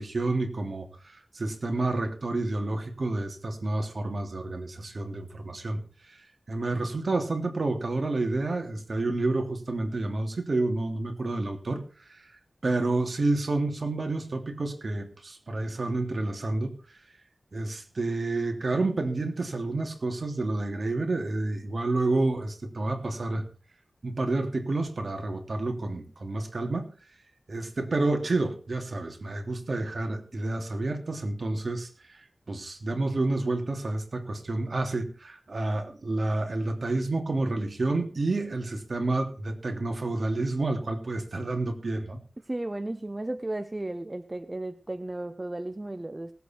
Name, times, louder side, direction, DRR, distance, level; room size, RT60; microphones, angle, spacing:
voice 1, 0.0-5.8 6.5-11.8 12.1-12.2 12.6-16.7 17.5-23.4 24.0-26.9 27.5-42.2, right 2 dB, 60° right, 4 dB, 3.1 m, -29 dB
voice 2, 42.5-46.3, right 1 dB, 25° right, 10 dB, 0.8 m, -34 dB
19.5 x 8.4 x 4.6 m, 0.36 s
wide cardioid pair, 75°, 0 cm